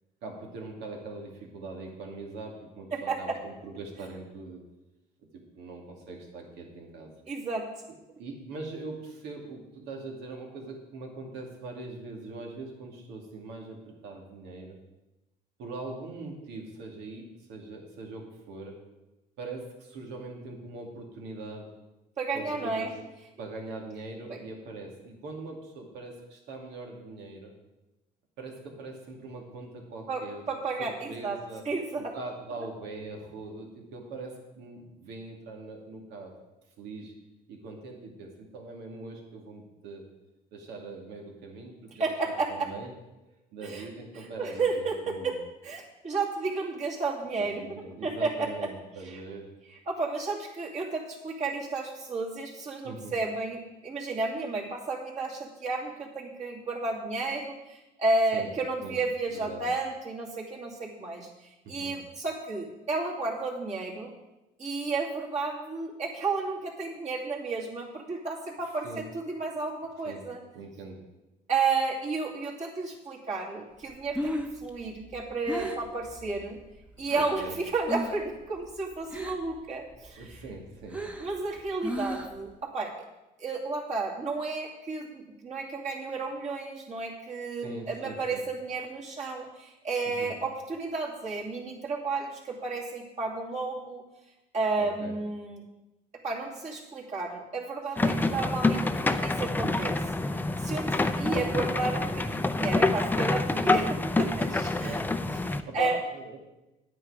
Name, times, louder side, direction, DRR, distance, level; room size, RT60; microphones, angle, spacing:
voice 1, 0.2-4.6 5.3-7.1 8.2-14.8 15.6-18.8 19.4-21.7 22.3-22.9 23.4-27.5 28.4-30.4 30.8-31.7 32.0-36.3 36.8-37.1 37.5-40.1 40.5-42.9 43.2-45.4 47.4-49.5 52.8-53.2 58.3-58.5 58.8-59.0 59.3-59.6 61.6-61.9 68.6-69.1 70.0-70.2 70.5-71.0 77.1-77.6 80.2-81.0 87.6-88.4 90.1-90.3 94.8-95.1 98.0-98.4 104.8-105.1 105.7-106.4, right 3 dB, 85° right, 1 dB, 2.4 m, -42 dB
voice 2, 2.9-3.4 7.3-7.7 22.2-22.9 30.1-31.4 31.6-32.1 42.0-42.7 43.6-43.9 44.4-45.4 45.6-48.5 49.0-49.2 49.9-61.3 61.7-64.1 64.6-70.4 71.5-76.6 77.0-80.4 81.2-82.9 83.4-94.0 94.5-95.6 96.2-100.0 100.6-105.0 105.5-106.0, right 3 dB, 45° right, -3 dB, 2.7 m, -32 dB
Breathing, 73.9-77.5 77.8-78.3 78.6-79.6 79.9-82.5, equal, 10° right, 1.0 m, -35 dB
sound 1, 98.0-105.6, left 2 dB, 10° left, 0.5 m, -27 dB
9.7 x 9.2 x 4.9 m, 1.0 s
cardioid pair, 110°, 17 cm